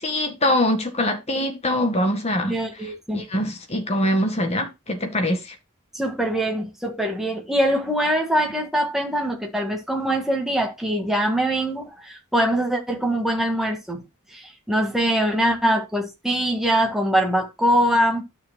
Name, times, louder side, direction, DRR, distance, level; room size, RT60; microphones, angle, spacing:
voice 1, 0.0-2.5 3.1-5.6, left 1 dB, 30° left, 1.8 m, -23 dB
voice 2, 2.5-3.2 5.9-14.0 14.3-18.2, right 1 dB, ahead, 1.8 m, -23 dB
12.0 x 6.6 x 2.2 m
head